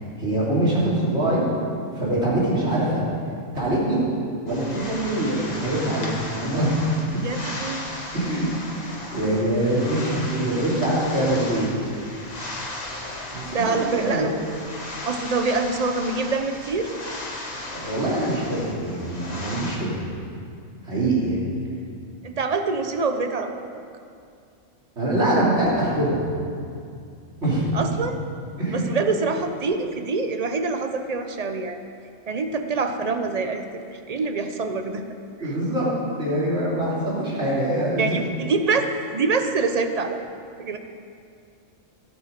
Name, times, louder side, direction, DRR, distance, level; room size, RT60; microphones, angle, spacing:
voice 1, 0.2-1.4 2.0-3.0 3.5-4.0 4.4-6.8 8.1-8.5 8.8-11.7 13.3-14.3 17.7-20.0 20.8-21.4 25.0-26.2 27.4-27.8 28.6-28.8 35.4-35.9 36.2-38.1, right 1 dB, 55° right, -7 dB, 3.6 m, -24 dB
sound 1, 4.5-19.8, left 2 dB, 30° left, 1.5 m, -36 dB
voice 2, 7.2-7.9 13.5-14.3 15.0-16.9 22.2-23.6 27.7-28.2 28.7-31.8 32.3-33.6 34.1-35.1 35.4-35.5 38.0-38.8 39.1-40.2 40.6-40.8, right 4 dB, 40° right, 7 dB, 0.6 m, -25 dB
14.5 x 8.4 x 5.2 m, 2.3 s
omnidirectional pair, 1.4 m